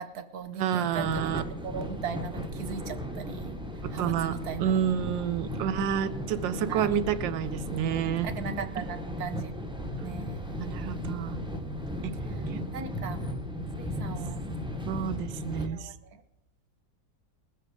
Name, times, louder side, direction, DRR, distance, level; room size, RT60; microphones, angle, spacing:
voice 1, 0.0-1.3 1.6-3.6 3.9-4.8 6.7-7.0 8.2-9.5 9.8-10.6 12.7-13.3 13.8-14.4 15.7-16.2, right 7 dB, 60° right, 10 dB, 1.2 m, -38 dB
voice 2, 0.6-1.4 3.8-8.3 10.6-11.4 12.0-12.1 12.5-12.6 14.9-15.9, right 9 dB, 85° right, 13 dB, 1.4 m, -29 dB
sound 1, 0.9-15.7, equal, 5° right, 0.7 m, -36 dB
20.5 x 7.6 x 4.8 m, 0.89 s
omnidirectional pair, 2.0 m